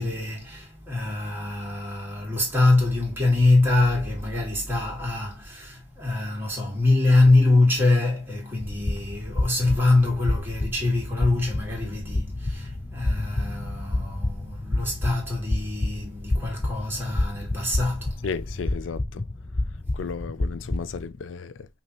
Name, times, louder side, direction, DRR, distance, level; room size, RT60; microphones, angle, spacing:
voice 1, 0.0-18.3, left 2 dB, 10° right, 1.8 m, -24 dB
sound 1, 8.6-21.1, left 2 dB, 25° left, 0.5 m, -29 dB
voice 2, 18.2-19.2 19.9-21.7, left 5 dB, 90° left, 0.4 m, -34 dB
5.3 x 2.8 x 3.0 m
head